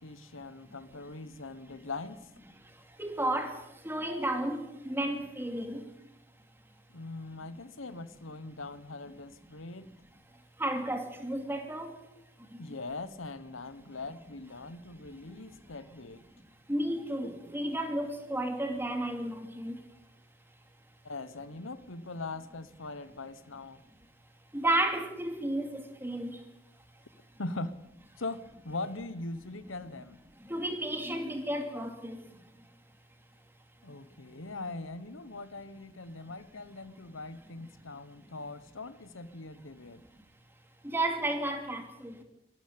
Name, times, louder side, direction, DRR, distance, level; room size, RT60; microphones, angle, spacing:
voice 1, 0.0-2.2 6.9-9.9 12.6-16.2 21.0-23.8 27.4-27.7 28.2-30.2 33.8-40.0, left 3 dB, 75° left, 14 dB, 1.2 m, -41 dB
voice 2, 3.0-3.5 3.8-5.8 10.6-11.9 16.7-19.8 24.5-26.4 30.5-32.2 40.8-42.1, right 1 dB, 10° right, 5 dB, 2.7 m, -32 dB
22.5 x 13.5 x 8.6 m, 0.80 s
head